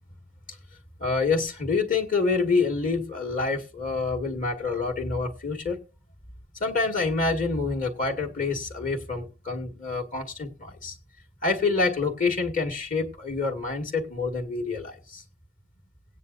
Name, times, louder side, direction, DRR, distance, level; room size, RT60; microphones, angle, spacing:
voice 1, 1.0-5.8 6.6-11.0 11.4-15.2, left 4 dB, 40° left, 2.0 m, -27 dB
17.5 x 9.6 x 2.6 m
head